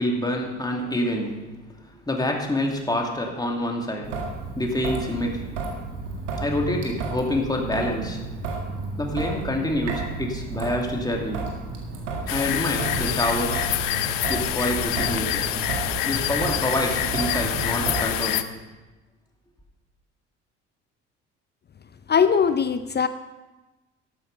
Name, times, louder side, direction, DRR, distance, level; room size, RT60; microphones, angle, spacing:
voice 1, 0.0-4.2 4.6-5.6 6.4-8.2 9.0-11.5 12.3-13.7 14.3-15.5 16.0-18.4, left 1 dB, 10° left, 0 dB, 2.5 m, -27 dB
Traffic noise roadway noise / Drip / Trickle dribble, 4.0-18.0, right 3 dB, 80° right, 2.0 m, -32 dB
sound 1, 12.3-18.4, left 13 dB, 65° left, 0.8 m, -27 dB
voice 2, 22.1-23.1, left 6 dB, 30° left, 12 dB, 0.6 m, -20 dB
12.0 x 8.7 x 5.5 m, 1.1 s
hypercardioid pair, 60°, 36 cm